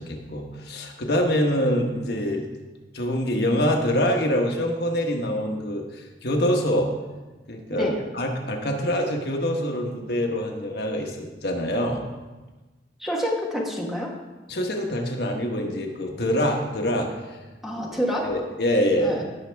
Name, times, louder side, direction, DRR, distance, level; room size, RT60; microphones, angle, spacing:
voice 1, 0.0-2.4 2.9-6.9 7.5-12.0 14.5-17.1 17.7-17.8 18.2-19.2, equal, 65° left, 2 dB, 1.3 m, -25 dB
voice 2, 7.7-8.0 13.0-14.1 17.6-18.4 19.0-19.2, equal, ahead, -2 dB, 1.3 m, -27 dB
17.5 x 6.3 x 3.4 m, 1.2 s
head